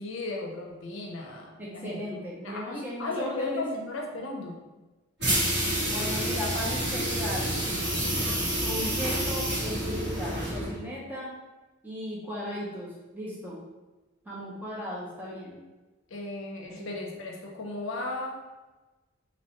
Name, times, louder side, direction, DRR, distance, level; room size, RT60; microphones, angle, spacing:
voice 1, 0.0-2.2 2.4-4.6 16.1-18.4, left 2 dB, 70° left, 0 dB, 0.5 m, -35 dB
voice 2, 1.6-3.6 5.9-7.5 8.6-11.3 11.8-13.6 14.2-15.6 16.7-16.9, equal, 10° right, -6 dB, 0.6 m, -36 dB
sound 1, 5.2-10.8, equal, 60° right, 1.3 m, -28 dB
2.9 x 2.1 x 2.9 m, 1.2 s
head